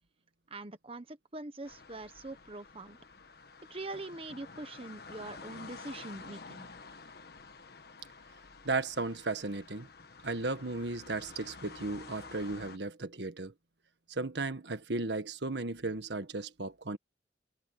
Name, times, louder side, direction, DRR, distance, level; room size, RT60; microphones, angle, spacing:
voice 1, 0.5-3.0 3.7-6.7, right 2 dB, 35° right, 1.3 m, -43 dB
sound 1, 1.6-12.8, left 4 dB, 60° left, 1.5 m, -50 dB
voice 2, 8.6-9.9 10.2-13.5 14.1-17.0, right 3 dB, 75° right, 1.6 m, -35 dB
head